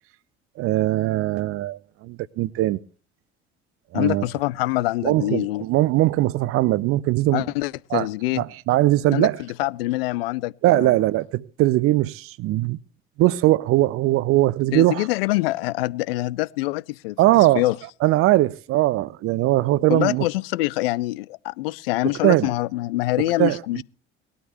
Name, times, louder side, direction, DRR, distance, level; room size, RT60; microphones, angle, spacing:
voice 1, 0.6-2.8 3.9-4.2 5.0-7.5 7.9-8.1 8.3-9.4 10.6-12.8 13.2-15.1 17.2-17.7 18.0-20.3 22.0-22.5 23.2-23.8, right 16 dB, 45° right, 0.6 m, -20 dB
voice 2, 3.9-5.6 7.3-8.4 9.1-10.9 14.7-17.8 19.9-23.8, left 19 dB, 65° left, 0.5 m, -25 dB
20.0 x 12.5 x 3.0 m
figure-of-eight pair, 55°, 32 cm